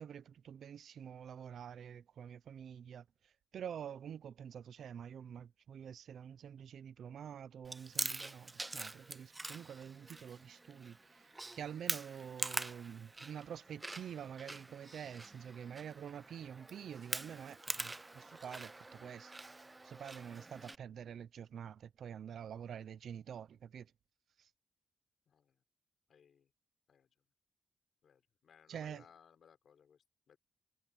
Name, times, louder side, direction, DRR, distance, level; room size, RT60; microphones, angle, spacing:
voice 1, 0.0-3.0 3.5-19.3 19.8-23.9 24.4-24.5 28.7-29.0, right 8 dB, 80° right, 0.9 m, -47 dB
Chewing mastication, 7.6-20.8, right 2 dB, 20° right, 0.3 m, -44 dB
voice 2, 25.3-25.6 26.1-26.5 26.9-27.1 28.0-30.4, left 7 dB, 70° left, 6.0 m, -65 dB
cardioid pair, 100°, 0 cm